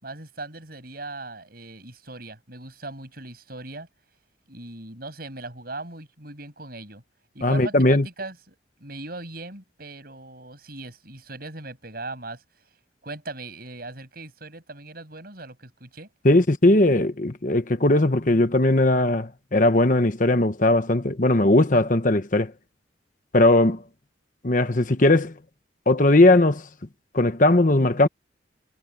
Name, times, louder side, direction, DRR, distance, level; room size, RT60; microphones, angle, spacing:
voice 1, 0.0-3.9 4.5-7.0 7.3-12.4 13.0-16.1, right 2 dB, 50° right, 7.9 m, -39 dB
voice 2, 7.4-8.0 16.2-22.5 23.3-23.8 24.4-25.3 25.9-26.6 27.1-28.1, left 2 dB, 45° left, 1.1 m, -19 dB
head